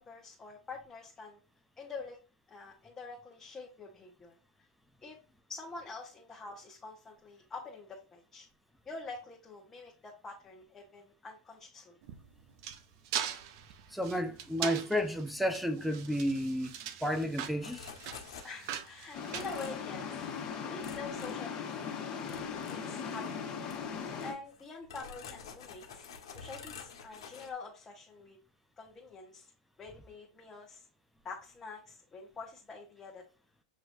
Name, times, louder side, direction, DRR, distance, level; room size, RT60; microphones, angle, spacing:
voice 1, 0.0-1.4 1.8-2.2 2.5-4.4 5.0-5.2 5.5-8.5 8.8-12.0 18.4-22.1 22.7-23.6 24.2-28.4 28.8-29.5 29.8-30.9 31.2-33.2, left 4 dB, 20° left, 1.1 m, -46 dB
sound 1, 12.0-20.3, right 9 dB, 55° right, 0.5 m, -41 dB
voice 2, 13.9-17.9, equal, ahead, 0.6 m, -32 dB
sound 2, 17.6-18.8 19.3-19.9 20.2-20.4 20.8-21.9 22.2-23.4 23.7-23.8 24.2-27.5, left 6 dB, 75° left, 1.1 m, -49 dB
sound 3, 19.1-24.3, left 6 dB, 35° left, 1.5 m, -39 dB
6.3 x 3.0 x 2.6 m
hypercardioid pair, 110°, 3 cm